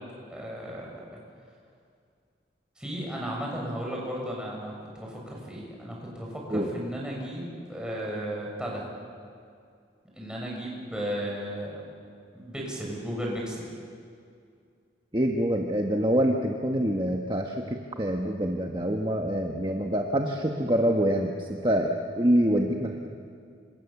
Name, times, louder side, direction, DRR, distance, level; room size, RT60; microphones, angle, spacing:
voice 1, 0.3-0.9 2.8-8.8 10.2-11.8 12.3-13.7, equal, 5° right, -3 dB, 7.1 m, -34 dB
voice 2, 15.1-23.1, equal, 25° right, 2 dB, 1.4 m, -26 dB
27.5 x 26.5 x 7.3 m, 2.3 s
head